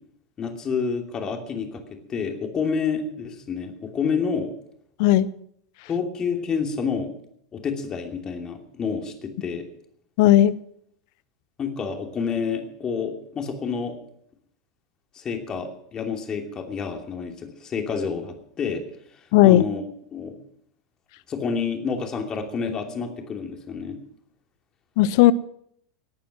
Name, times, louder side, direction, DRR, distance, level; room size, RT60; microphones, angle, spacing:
voice 1, 0.4-1.8 2.1-4.5 5.9-7.1 7.5-9.7 11.6-14.0 15.1-18.8 19.4-19.8 20.1-20.3 21.3-24.0, left 6 dB, 30° left, 3 dB, 2.9 m, -28 dB
voice 2, 10.2-10.5 19.3-19.6 25.0-25.3, left 14 dB, 55° left, 18 dB, 0.6 m, -15 dB
19.0 x 9.3 x 6.1 m, 0.70 s
figure-of-eight pair, 85°, 3 cm